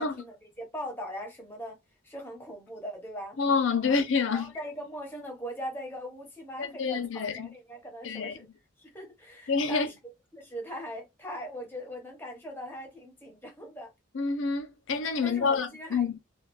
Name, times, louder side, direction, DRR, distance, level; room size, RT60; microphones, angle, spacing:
voice 1, 0.0-1.8 2.0-3.4 3.8-4.0 4.3-8.4 8.8-13.9 15.2-16.1, equal, 10° left, 1.0 m, -40 dB
voice 2, 3.4-4.5 6.6-7.5 8.0-8.3 9.5-9.9 14.1-16.2, left 5 dB, 65° left, 0.5 m, -27 dB
3.2 x 2.4 x 3.0 m
head